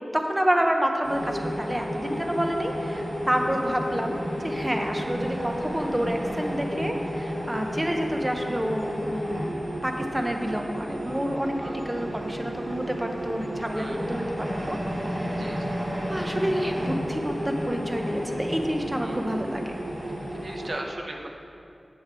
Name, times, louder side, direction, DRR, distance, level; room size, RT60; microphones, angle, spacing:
voice 1, 0.1-9.5 9.8-15.5 16.1-19.8, equal, 15° right, 3 dB, 0.8 m, -29 dB
sound 1, 1.0-20.7, equal, 85° right, 2.2 m, -32 dB
voice 2, 11.6-12.1 13.7-14.2 15.3-15.8 19.0-19.2 20.3-21.3, right 1 dB, 55° right, 1 dB, 0.9 m, -38 dB
7.9 x 7.5 x 4.4 m, 2.5 s
wide cardioid pair, 75°, 0 cm